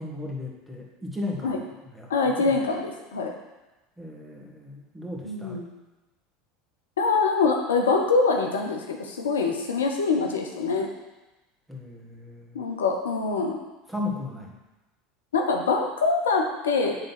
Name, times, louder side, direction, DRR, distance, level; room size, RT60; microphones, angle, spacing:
voice 1, 0.0-1.6 1.9-2.6 4.0-5.6 11.7-12.7 13.9-14.6, left 2 dB, ahead, -3 dB, 1.9 m, -36 dB
voice 2, 2.1-3.3 5.2-5.7 7.0-10.9 12.5-13.6 15.3-17.0, left 4 dB, 80° left, 2 dB, 0.8 m, -24 dB
7.8 x 3.7 x 6.0 m, 1.1 s
figure-of-eight pair, 75°, 0 cm